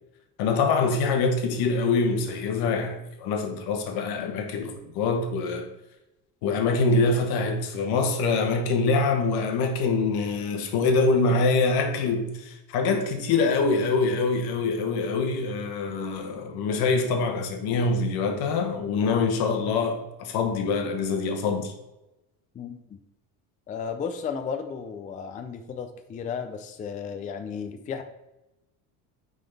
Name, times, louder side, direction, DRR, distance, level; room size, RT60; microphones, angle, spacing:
voice 1, 0.4-5.7 6.4-21.7, left 3 dB, 75° left, 1.2 m, -24 dB
voice 2, 22.5-23.0 23.7-28.0, left 6 dB, 20° left, 0.4 m, -34 dB
9.1 x 3.9 x 3.4 m
cardioid pair, 155°, 37 cm